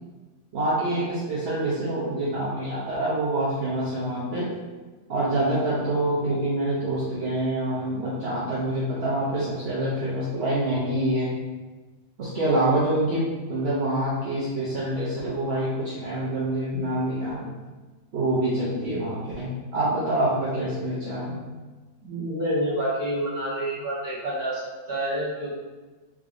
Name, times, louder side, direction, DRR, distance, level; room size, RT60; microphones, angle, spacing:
voice 1, 0.5-4.5 5.1-11.3 12.2-17.5 18.1-21.4, right 1 dB, 55° right, -9 dB, 0.7 m, -26 dB
voice 2, 22.0-24.6 24.9-25.5, right 1 dB, 25° right, -10 dB, 1.3 m, -28 dB
3.6 x 3.0 x 2.5 m, 1.3 s
omnidirectional pair, 1.9 m